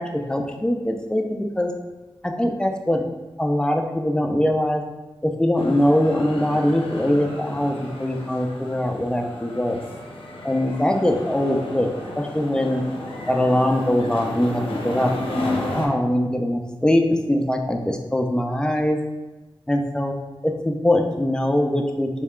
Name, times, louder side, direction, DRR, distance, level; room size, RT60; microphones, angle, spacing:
voice 1, 0.0-1.7 2.2-3.1 3.4-4.8 5.2-9.8 10.4-11.9 12.1-12.8 13.3-19.0 19.7-20.1 20.4-22.2, left 1 dB, 10° left, 3 dB, 0.4 m, -22 dB
sound 1, 5.6-15.9, left 2 dB, 80° left, 0.5 m, -32 dB
3.2 x 2.2 x 3.6 m, 1.1 s
wide cardioid pair, 65°, 9 cm